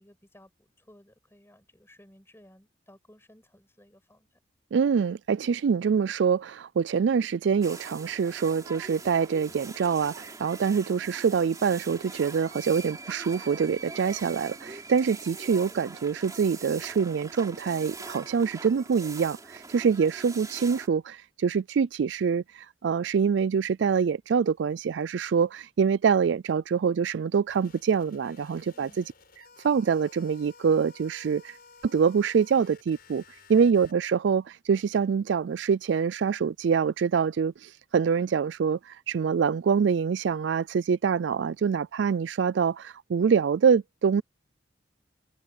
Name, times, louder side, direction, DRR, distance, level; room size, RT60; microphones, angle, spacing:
voice 1, 0.0-4.3 28.7-29.0 33.5-33.8, left 1 dB, 15° left, 6.1 m, -56 dB
voice 2, 4.7-29.0 29.6-31.6 31.8-33.2 33.5-44.2, right 6 dB, 70° right, 0.4 m, -25 dB
sound 1, 7.6-20.9, right 3 dB, 20° right, 3.4 m, -43 dB
sound 2, 27.5-33.9, left 4 dB, 50° left, 6.5 m, -54 dB
head